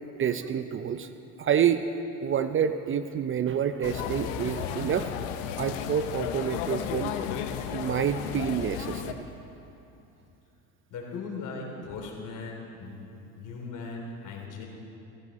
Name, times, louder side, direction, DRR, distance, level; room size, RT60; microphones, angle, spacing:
voice 1, 0.1-1.1 1.4-1.8 2.2-5.1 5.6-7.1 7.7-9.2, right 8 dB, 35° right, 10 dB, 0.6 m, -28 dB
sound 1, 3.8-9.1, left 8 dB, 90° left, 0.9 m, -33 dB
voice 2, 10.9-13.1 13.3-14.7, left 4 dB, 60° left, 0 dB, 3.1 m, -38 dB
15.5 x 15.5 x 4.1 m, 2.8 s
supercardioid pair, 95°, 36 cm